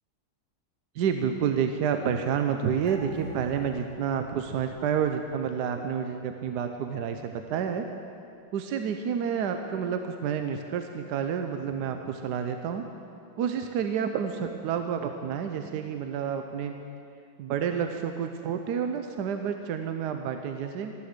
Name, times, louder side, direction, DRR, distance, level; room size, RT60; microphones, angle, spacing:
voice 1, 1.0-7.8 8.5-12.8 13.3-16.8 17.4-20.9, right 7 dB, 80° right, 6 dB, 1.3 m, -29 dB
sound 1, 2.9-5.8 6.1-6.2, left 2 dB, 35° right, 3.2 m, -46 dB
13.0 x 11.5 x 6.6 m, 2.5 s
omnidirectional pair, 1.8 m